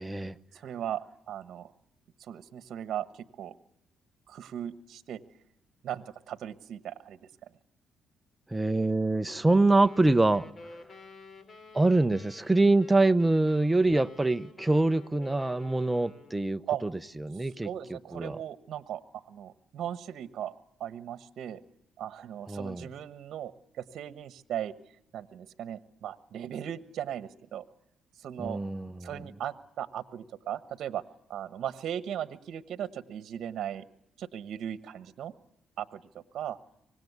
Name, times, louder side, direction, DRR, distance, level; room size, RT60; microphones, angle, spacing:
voice 1, 0.0-0.4 8.5-10.8 11.7-16.9 17.2-18.4 22.5-22.9 28.4-29.3, right 2 dB, 10° right, 0.8 m, -25 dB
voice 2, 0.5-1.7 2.2-3.5 4.3-5.2 5.8-7.5 16.7-16.8 17.6-20.5 20.8-21.6 22.0-23.5 23.8-24.7 25.1-27.6 28.2-28.6 29.0-31.0 31.3-33.8 34.2-35.3 35.8-36.6, right 10 dB, 70° right, 1.2 m, -37 dB
sound 1, 9.7-16.5, left 3 dB, 40° left, 4.0 m, -51 dB
25.0 x 19.5 x 8.2 m
cardioid pair, 90°, 0 cm